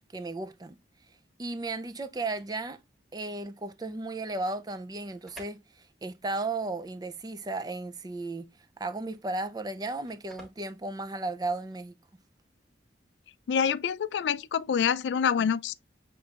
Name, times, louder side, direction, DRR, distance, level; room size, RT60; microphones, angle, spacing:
voice 1, 0.1-0.8 1.4-2.8 3.1-8.5 8.8-12.0, right 2 dB, 20° right, 0.4 m, -35 dB
sound 1, 4.9-11.8, equal, ahead, 1.6 m, -55 dB
voice 2, 13.5-15.7, left 7 dB, 85° left, 0.3 m, -26 dB
6.8 x 3.0 x 2.4 m
head